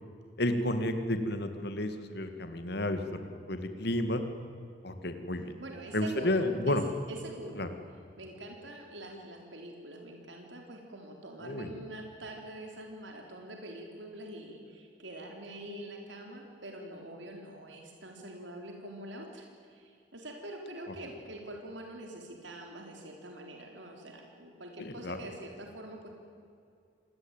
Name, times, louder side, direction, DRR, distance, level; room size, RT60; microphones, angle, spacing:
voice 1, 0.4-4.2 4.8-5.5 5.9-6.8 7.6-7.7 11.4-11.7 24.8-25.2, left 1 dB, 65° left, 8 dB, 2.1 m, -31 dB
voice 2, 5.6-6.8 7.1-7.7 8.2-26.1, right 1 dB, 85° right, 2 dB, 3.8 m, -45 dB
27.5 x 20.0 x 9.0 m, 2.4 s
head